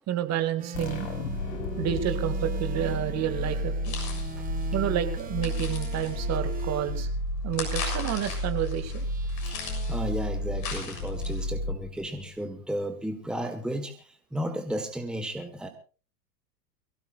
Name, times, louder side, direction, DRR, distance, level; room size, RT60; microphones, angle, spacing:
voice 1, 0.1-1.1 1.8-3.9 4.7-7.1 7.4-9.1, right 11 dB, 30° right, 8 dB, 2.2 m, -30 dB
sound 1, 0.6-7.2 9.0-11.4, right 8 dB, 15° right, 1.3 m, -43 dB
sound 2, 0.7-12.2, left 1 dB, 60° left, 6.0 m, -32 dB
sound 3, 3.8-11.5, left 5 dB, 40° left, 7.0 m, -39 dB
voice 2, 9.4-15.7, equal, ahead, 6 dB, 1.6 m, -34 dB
23.0 x 17.0 x 2.6 m, 0.37 s
hypercardioid pair, 100°, 48 cm